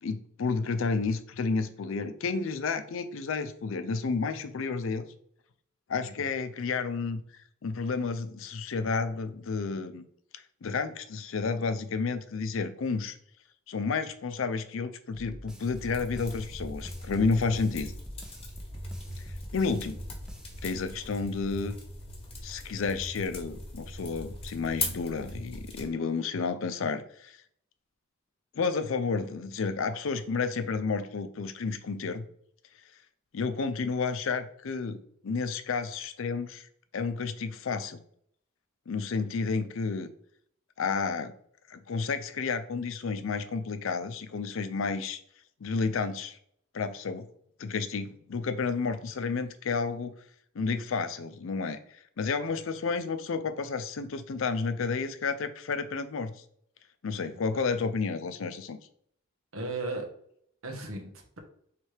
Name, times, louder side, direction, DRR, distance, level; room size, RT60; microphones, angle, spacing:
voice 1, 0.0-5.1 5.9-7.2 7.6-10.0 10.6-13.1 13.7-17.9 19.5-20.0 20.6-21.8 22.4-27.4 28.5-32.3 33.3-36.7 36.9-38.0 38.9-40.1 40.8-41.3 41.7-45.2 45.6-46.4 46.7-47.3 47.6-50.1 50.5-51.8 52.2-56.3 57.0-58.8, left 4 dB, 70° left, 10 dB, 0.5 m, -31 dB
sound 1, 15.1-21.2, equal, 5° right, 0.5 m, -46 dB
sound 2, 15.8-25.9, left 2 dB, 30° left, 1.0 m, -40 dB
voice 2, 59.5-60.0 60.6-61.4, right 2 dB, 90° right, 2 dB, 1.1 m, -37 dB
3.3 x 3.3 x 4.5 m, 0.65 s
head